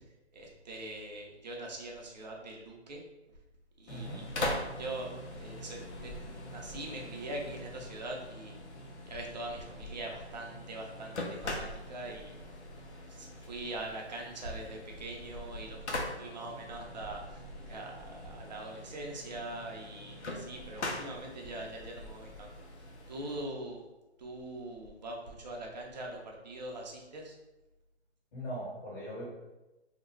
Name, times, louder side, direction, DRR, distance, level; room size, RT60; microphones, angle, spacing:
voice 1, 0.3-3.0 3.8-5.1 5.4-8.6 9.0-12.3 13.1-17.4 17.7-22.5 23.1-23.8 24.2-27.3, right 2 dB, 40° right, 0 dB, 0.6 m, -42 dB
sound 1, 3.9-23.4, left 2 dB, 85° left, 0.7 m, -42 dB
voice 2, 3.9-4.2 28.3-29.2, equal, 30° left, -9 dB, 1.1 m, -40 dB
2.4 x 2.1 x 3.1 m, 1.0 s
hypercardioid pair, 155°, 33 cm